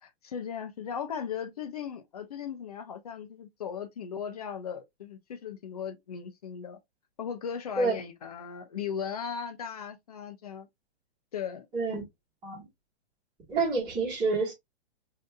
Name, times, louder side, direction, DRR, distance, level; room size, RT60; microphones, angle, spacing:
voice 1, 0.0-6.8 7.2-10.7 11.3-11.7, left 7 dB, 35° left, 0.5 m, -37 dB
voice 2, 13.5-14.5, right 3 dB, 15° right, 1.5 m, -28 dB
4.9 x 2.7 x 2.2 m
hypercardioid pair, 175°, 33 cm